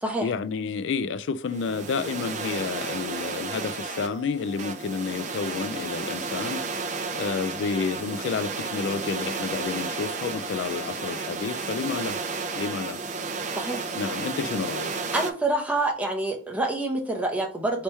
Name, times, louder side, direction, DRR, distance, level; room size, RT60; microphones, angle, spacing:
voice 1, 0.2-6.6 7.1-12.2 12.5-13.0 13.9-14.9, left 5 dB, 75° left, 0.3 m, -30 dB
sound 1, 1.5-15.3, right 4 dB, 40° right, 0.5 m, -32 dB
voice 2, 15.1-17.8, right 2 dB, 10° right, 0.8 m, -27 dB
3.3 x 2.9 x 4.3 m
head